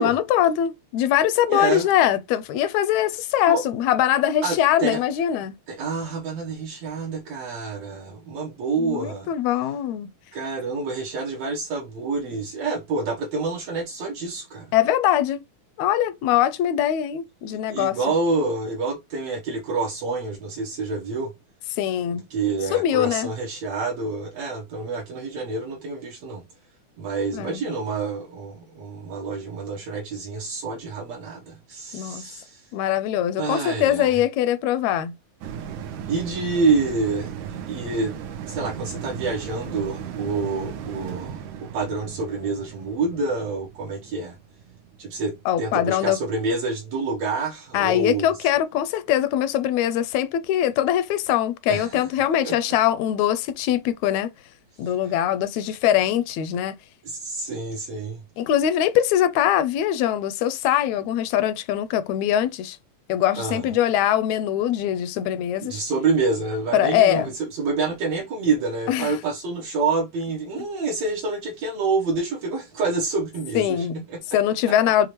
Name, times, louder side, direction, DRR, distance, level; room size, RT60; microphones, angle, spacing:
voice 1, 0.0-5.6 8.8-10.1 14.7-15.4 15.8-18.0 21.7-22.2 22.7-23.3 27.3-27.6 31.9-32.2 32.7-35.1 45.5-46.2 47.7-54.3 54.8-56.8 58.4-62.8 63.1-65.8 66.7-67.3 68.9-69.2 73.6-74.0 74.3-75.1, left 11 dB, 80° left, 1.8 m, -22 dB
voice 2, 1.5-1.9 3.5-3.6 4.4-5.0 5.7-9.3 10.3-14.7 17.5-21.3 22.1-26.4 27.0-32.7 33.4-34.2 36.1-37.3 37.7-38.2 38.5-44.4 45.0-48.3 51.7-52.1 52.4-52.6 57.0-58.2 63.4-63.7 65.6-74.2, right 3 dB, 70° right, 2.1 m, -27 dB
sound 1, 35.4-46.1 46.5-46.6, right 8 dB, 90° right, 2.3 m, -36 dB
6.6 x 2.5 x 3.0 m
omnidirectional pair, 3.3 m